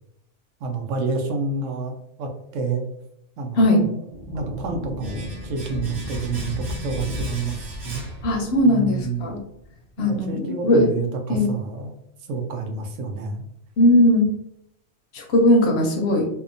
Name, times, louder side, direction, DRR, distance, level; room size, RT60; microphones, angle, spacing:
voice 1, 0.6-2.8 3.4-3.9 4.3-8.0 8.6-9.3 10.0-11.9 12.3-13.4, right 4 dB, 90° right, 4 dB, 0.9 m, -29 dB
sound 1, 4.1-9.7, left 1 dB, 40° right, 0.7 m, -34 dB
Domestic sounds home sounds, 5.0-8.8 9.1-9.2, right 2 dB, 60° right, 1.1 m, -41 dB
voice 2, 8.2-9.4 10.0-10.9 11.3-11.5 13.8-14.3 15.1-16.3, left 1 dB, 65° left, 2 dB, 0.7 m, -18 dB
2.7 x 2.1 x 2.5 m, 0.76 s
omnidirectional pair, 1.3 m